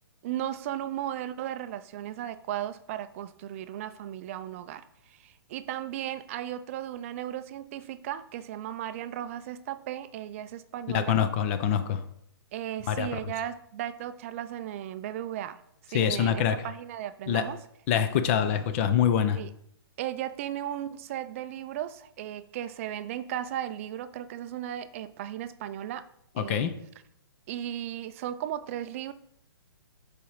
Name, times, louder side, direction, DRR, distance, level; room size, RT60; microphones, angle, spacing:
voice 1, 0.2-11.2 12.5-15.6 15.9-17.6 19.3-19.5 20.0-26.1 26.4-26.7 27.5-29.1, right 11 dB, 35° right, 13 dB, 0.4 m, -36 dB
voice 2, 10.9-12.0 12.9-13.1 15.9-16.6 17.3-17.5 17.9-19.4 26.4-26.7, left 9 dB, 30° left, 10 dB, 0.6 m, -25 dB
7.0 x 5.0 x 4.7 m, 0.72 s
hypercardioid pair, 150°, 13 cm